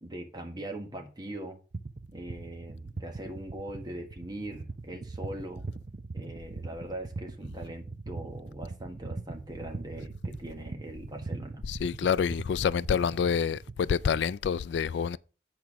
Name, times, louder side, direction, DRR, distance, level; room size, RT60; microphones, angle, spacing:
voice 1, 0.0-1.6 2.1-5.6 6.1-11.6, right 1 dB, 20° right, 1.4 m, -41 dB
sound 1, 1.7-14.4, right 3 dB, 45° right, 0.6 m, -41 dB
voice 2, 11.7-15.2, left 7 dB, 75° left, 0.3 m, -27 dB
8.8 x 4.6 x 6.0 m
head